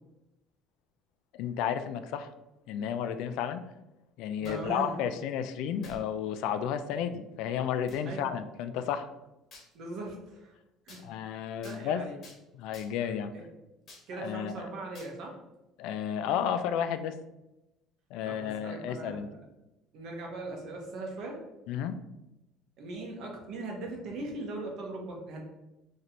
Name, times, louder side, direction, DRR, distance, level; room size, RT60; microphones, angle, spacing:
voice 1, 1.3-2.3 2.7-3.6 4.2-9.1 11.0-12.1 12.5-13.3 14.1-14.7 15.8-17.1 18.1-19.3 21.7-22.0, left 8 dB, 75° left, 10 dB, 0.3 m, -32 dB
sound 1, 4.4-4.7 5.8-6.1 6.7-6.8 7.9-8.0 9.5-9.7 10.9-11.0 11.6-11.8 12.2-12.4 12.7-13.1 13.9-14.1 14.9-15.1, left 2 dB, 45° left, 1.4 m, -51 dB
voice 2, 4.4-4.9 8.0-8.2 9.7-10.5 10.9-11.2 11.6-12.2 13.0-13.4 14.1-15.4 18.3-19.4 19.9-21.4 22.8-25.4, right 2 dB, 60° right, 0 dB, 1.1 m, -40 dB
3.1 x 2.6 x 4.2 m, 0.95 s
cardioid pair, 125°, 0 cm